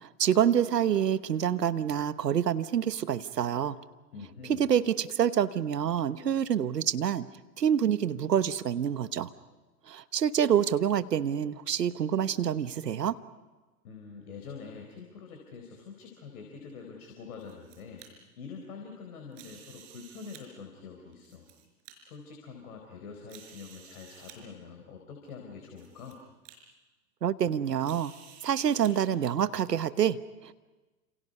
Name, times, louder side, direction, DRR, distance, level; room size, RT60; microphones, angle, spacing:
voice 1, 0.0-3.8 4.5-7.3 7.6-9.3 9.9-13.2 27.2-28.1 28.4-30.5, right 9 dB, 80° right, 14 dB, 1.2 m, -27 dB
voice 2, 4.1-4.7 13.8-18.1 18.4-21.5 22.0-26.2, left 5 dB, 65° left, 2 dB, 4.6 m, -45 dB
sound 1, 17.2-18.1 19.3-20.4 21.1-21.9 22.6-22.7 23.3-24.4 25.3-25.4 25.8-26.1 26.4-26.6 27.8-28.9, right 9 dB, 40° right, 5.2 m, -52 dB
30.0 x 27.5 x 5.5 m, 1.2 s
hypercardioid pair, 105°, 48 cm